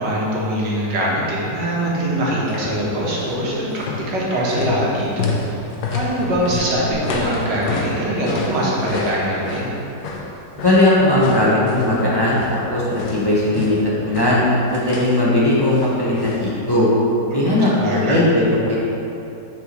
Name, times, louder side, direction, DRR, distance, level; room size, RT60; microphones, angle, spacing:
voice 1, 0.0-5.3 5.9-9.7 17.3-18.2, right 1 dB, 80° right, -5 dB, 1.9 m, -22 dB
sound 1, 2.5-2.8 3.1-3.4 3.7-12.6 12.9-15.2 15.7-16.5 16.8-16.9, left 4 dB, 70° left, 1.3 m, -29 dB
voice 2, 10.5-13.8 14.0-16.9 17.3-18.8, left 1 dB, 15° left, -8 dB, 0.9 m, -18 dB
9.7 x 4.6 x 3.1 m, 2.8 s
omnidirectional pair, 1.9 m